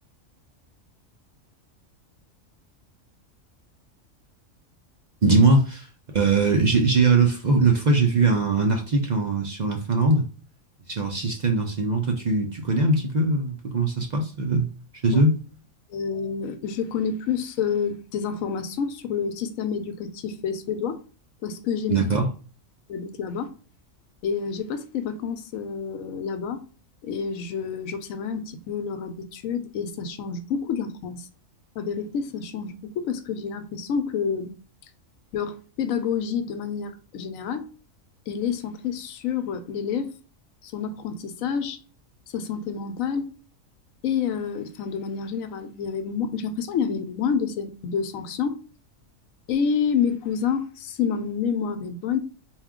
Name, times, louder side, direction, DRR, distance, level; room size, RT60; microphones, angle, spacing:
voice 1, 5.2-5.9 6.1-10.2 10.9-14.7 15.0-15.4 21.9-22.3, right 3 dB, 55° right, 0.5 m, -21 dB
voice 2, 15.9-21.0 21.4-22.0 22.9-23.5 24.2-26.6 27.0-31.3 31.8-34.5 35.3-37.7 38.3-40.1 40.6-41.8 42.3-43.3 44.0-48.6 49.5-52.2, left 6 dB, 80° left, 1.0 m, -28 dB
4.3 x 2.3 x 3.6 m
omnidirectional pair, 1.4 m